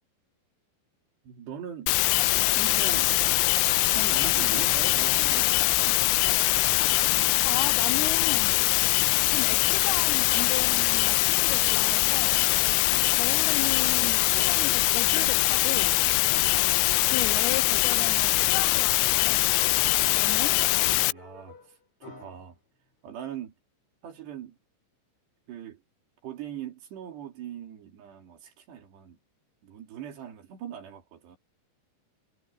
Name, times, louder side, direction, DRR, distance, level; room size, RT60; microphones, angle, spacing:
voice 1, 1.2-2.0 2.5-3.2 3.8-6.0 20.1-20.6 21.1-22.6 23.0-23.5 24.0-24.6 25.5-25.8 26.2-29.2 29.6-31.4, right 9 dB, 65° right, 5.3 m, -41 dB
sound 1, 1.9-21.1, left 22 dB, 85° left, 3.1 m, -23 dB
voice 2, 7.4-8.6 9.3-12.4 13.1-15.9 17.0-19.5 20.1-20.5, left 12 dB, 65° left, 3.3 m, -35 dB
sound 2, 14.9-22.5, left 5 dB, 35° left, 8.4 m, -50 dB
omnidirectional pair, 5.5 m